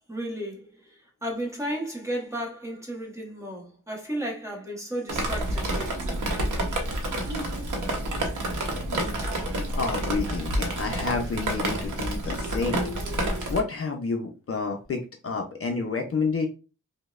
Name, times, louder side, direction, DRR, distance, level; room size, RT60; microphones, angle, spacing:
voice 1, 0.1-6.2, right 1 dB, 10° right, 0.8 m, -34 dB
Drip, 5.1-13.6, right 1 dB, 70° right, 0.9 m, -29 dB
voice 2, 9.4-16.5, left 4 dB, 45° left, 0.5 m, -30 dB
5.2 x 2.0 x 2.3 m
wide cardioid pair, 180°, 32 cm